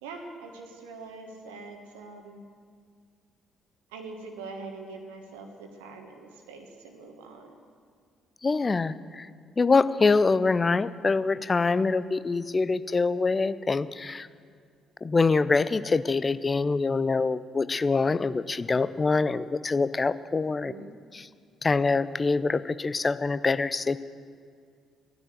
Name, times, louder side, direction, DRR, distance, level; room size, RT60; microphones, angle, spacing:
voice 1, 0.0-2.4 3.9-7.6 20.6-20.9, right 3 dB, 70° right, 4 dB, 1.3 m, -43 dB
voice 2, 8.4-9.3 9.6-14.3 15.0-20.7 21.1-21.3 21.6-24.0, left 4 dB, 25° left, 15 dB, 0.5 m, -25 dB
15.0 x 10.5 x 7.7 m, 2.1 s
figure-of-eight pair, 45°, 0 cm